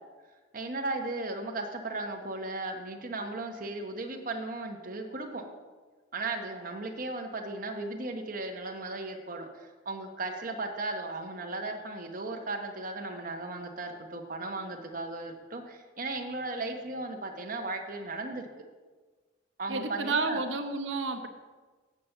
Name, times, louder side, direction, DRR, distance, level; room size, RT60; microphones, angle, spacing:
voice 1, 0.5-5.4 6.1-18.5 19.6-20.4, right 2 dB, 45° right, 3 dB, 1.1 m, -36 dB
voice 2, 19.7-21.3, right 3 dB, 75° right, 6 dB, 0.9 m, -31 dB
8.8 x 5.9 x 6.6 m, 1.3 s
head